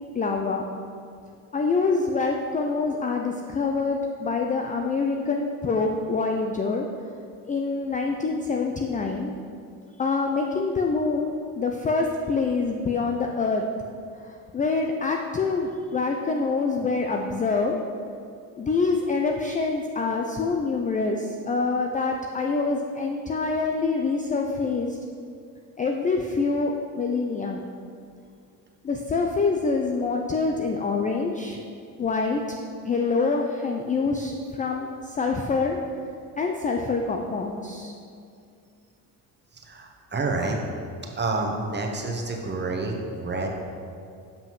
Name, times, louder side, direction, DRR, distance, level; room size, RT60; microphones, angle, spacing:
voice 1, 0.1-0.6 1.5-6.9 7.5-9.3 10.0-13.7 14.2-17.8 18.6-25.0 25.8-27.6 28.8-31.6 32.0-32.4 32.8-35.8 36.4-37.9, left 4 dB, 20° left, 2 dB, 0.4 m, -26 dB
voice 2, 39.5-40.6 41.1-43.5, right 3 dB, 25° right, 1 dB, 1.0 m, -28 dB
7.4 x 5.5 x 3.1 m, 2.4 s
hypercardioid pair, 65°, 45 cm